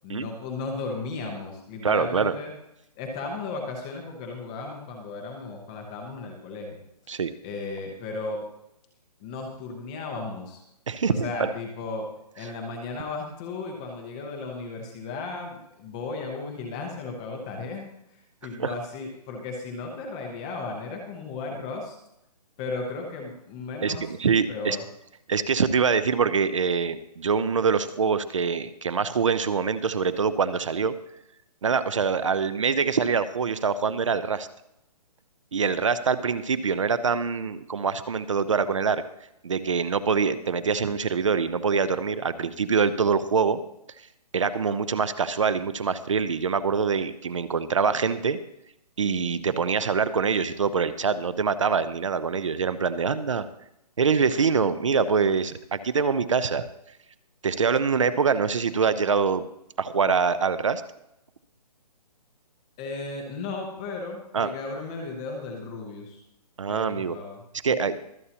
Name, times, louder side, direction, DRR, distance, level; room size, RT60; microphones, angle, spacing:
voice 1, 0.0-2.5 3.0-6.8 7.4-8.4 9.2-10.6 11.0-12.1 12.3-17.9 18.1-22.0 22.6-24.1 24.5-24.8 62.8-66.2 66.7-67.9, left 3 dB, 10° left, 2 dB, 0.7 m, -35 dB
voice 2, 1.8-2.3 7.1-7.3 10.9-11.5 18.6-18.7 23.8-24.8 25.3-30.9 31.6-34.5 35.5-39.0 39.4-43.6 44.3-48.4 49.0-53.5 54.0-56.6 57.4-59.4 59.8-60.8 64.3-64.5 66.6-67.2 67.6-68.0, right 5 dB, 50° right, 13 dB, 0.7 m, -24 dB
24.0 x 8.3 x 2.9 m, 0.81 s
hypercardioid pair, 175°, 21 cm